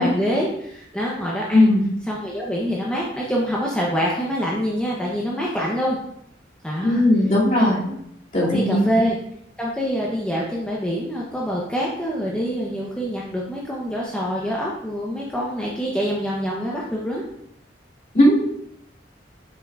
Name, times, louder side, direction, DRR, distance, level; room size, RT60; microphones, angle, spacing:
voice 1, 0.0-1.7 2.1-6.0 6.6-7.0 7.6-8.0 8.4-9.2 9.6-17.2, equal, 5° left, -4 dB, 0.8 m, -25 dB
voice 2, 1.5-1.8 6.8-7.8 8.3-8.9 18.1-18.5, left 1 dB, 45° left, -8 dB, 2.6 m, -17 dB
7.6 x 5.8 x 2.4 m, 0.73 s
head